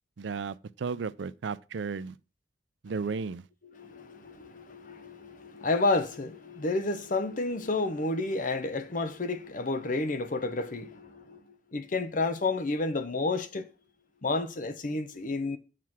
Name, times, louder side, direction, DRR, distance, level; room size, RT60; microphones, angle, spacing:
voice 1, 0.2-2.2 2.8-3.4, right 5 dB, 85° right, 0.5 m, -34 dB
voice 2, 3.8-11.4 11.7-13.7 14.2-15.6, left 3 dB, 45° left, 0.8 m, -30 dB
7.5 x 4.7 x 6.0 m
head